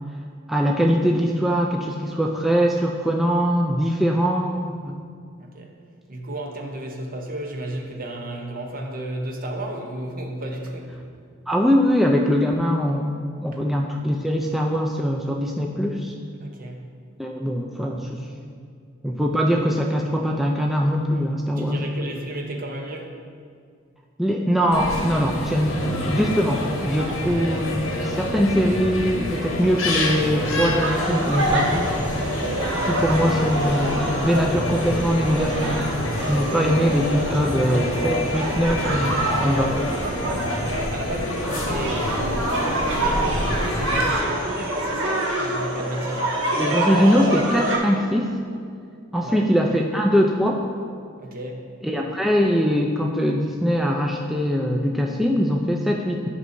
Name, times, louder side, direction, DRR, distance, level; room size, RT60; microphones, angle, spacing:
voice 1, 0.5-5.0 11.5-16.1 17.2-18.3 19.0-22.1 24.2-31.9 32.8-35.9 36.3-39.8 46.6-48.3 49.1-50.6 51.8-56.3, equal, ahead, 0 dB, 0.3 m, -22 dB
voice 2, 5.4-5.7 6.1-11.0 13.5-13.6 16.4-16.9 21.6-23.2 36.5-36.7 40.5-42.2 42.9-46.3 49.2-49.5 51.2-51.7, right 1 dB, 45° right, 2 dB, 0.8 m, -33 dB
sound 1, 24.7-44.1, left 1 dB, 75° left, 1.1 m, -27 dB
sound 2, 30.8-47.8, right 1 dB, 70° right, 1.3 m, -26 dB
11.0 x 5.5 x 2.6 m, 2.2 s
head